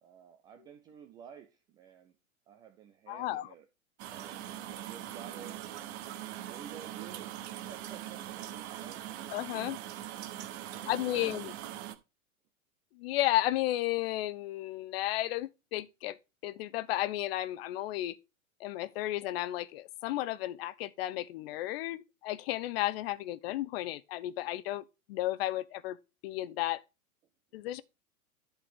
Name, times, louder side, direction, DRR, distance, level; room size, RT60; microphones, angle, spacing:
voice 1, 0.0-2.2 2.5-3.7 4.1-5.6 6.5-9.2 10.4-11.4, right 8 dB, 10° right, 0.3 m, -52 dB
voice 2, 3.1-3.5 9.3-9.8 10.9-11.5 12.9-16.2 16.4-18.2 18.6-26.0 26.2-26.8 27.5-27.8, left 15 dB, 45° left, 0.8 m, -33 dB
sound 1, 4.0-12.0, right 12 dB, 50° right, 1.3 m, -42 dB
11.0 x 4.9 x 3.7 m
figure-of-eight pair, 100°, 43 cm